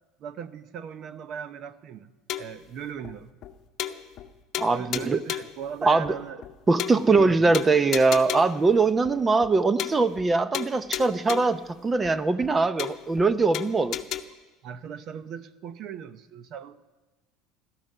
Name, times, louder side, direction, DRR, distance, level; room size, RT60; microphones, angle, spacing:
voice 1, 0.2-2.1 2.4-3.3 4.7-6.4 6.9-7.6 14.6-16.8, right 8 dB, 50° right, 14 dB, 0.8 m, -38 dB
sound 1, 2.3-2.6 3.0-3.1 3.4-3.5 3.8-4.3 4.5-5.6 6.0-6.1 6.4-6.5 6.8-7.3 7.5-8.6 9.0-9.1 9.4-9.5 9.8-10.3 10.5-11.6 12.0-12.1 12.4-12.5 12.8-13.3 13.5-14.2, left 12 dB, 50° left, 0.9 m, -33 dB
voice 2, 4.6-5.2 5.8-6.2 6.7-14.0, right 3 dB, 15° right, 14 dB, 0.6 m, -22 dB
16.5 x 13.5 x 5.5 m, 1.2 s
cardioid pair, 135°, 0 cm